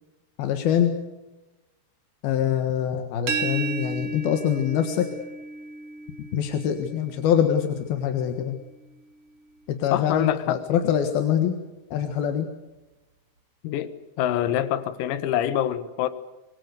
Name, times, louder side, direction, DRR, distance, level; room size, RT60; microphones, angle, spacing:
voice 1, 0.4-1.0 2.2-5.1 6.3-8.6 9.7-11.6 11.9-12.5, left 9 dB, 60° left, 6 dB, 2.8 m, -24 dB
sound 1, 3.3-9.0, right 4 dB, 45° right, 2.2 m, -35 dB
voice 2, 9.9-10.6 13.6-16.1, left 11 dB, 90° left, 12 dB, 4.0 m, -25 dB
25.5 x 24.5 x 6.6 m, 1.1 s
omnidirectional pair, 6.0 m